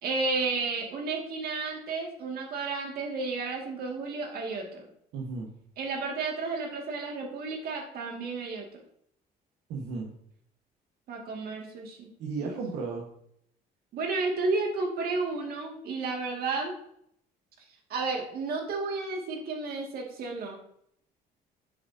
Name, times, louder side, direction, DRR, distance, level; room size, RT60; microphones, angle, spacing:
voice 1, 0.0-4.9 5.8-8.7 11.1-12.1 12.4-12.5 13.9-16.7 17.9-20.6, right 3 dB, 65° right, 1 dB, 2.2 m, -32 dB
voice 2, 5.1-5.5 9.7-10.1 12.2-13.1, right 4 dB, 80° right, -1 dB, 1.5 m, -34 dB
9.2 x 7.3 x 2.8 m, 0.71 s
cardioid pair, 110°, 17 cm